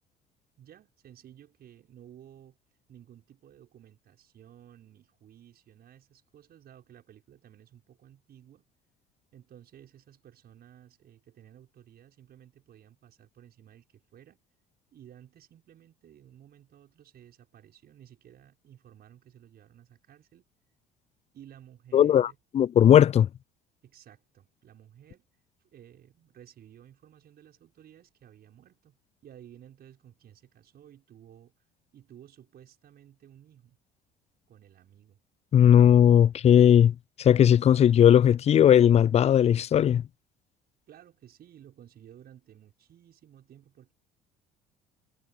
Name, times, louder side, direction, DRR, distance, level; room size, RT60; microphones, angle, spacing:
voice 1, 0.6-2.6 2.9-8.7 9.3-14.4 14.9-20.5 21.3-22.4 23.8-25.3 25.7-29.0 29.2-31.5 31.9-33.8 34.5-35.2 40.9-43.9, right 10 dB, 50° right, 6.3 m, -54 dB
voice 2, 21.9-23.3 35.5-40.0, left 9 dB, 35° left, 0.4 m, -18 dB
hypercardioid pair, 60°, 20 cm